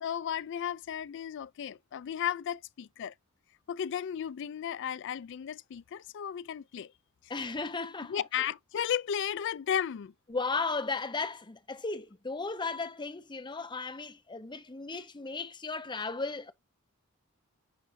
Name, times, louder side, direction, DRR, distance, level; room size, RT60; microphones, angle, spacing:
voice 1, 0.0-3.1 3.7-6.9 8.1-10.1, left 9 dB, 60° left, 0.3 m, -34 dB
voice 2, 7.3-8.5 10.3-16.5, left 4 dB, 20° left, 0.7 m, -35 dB
10.5 x 3.9 x 2.7 m
head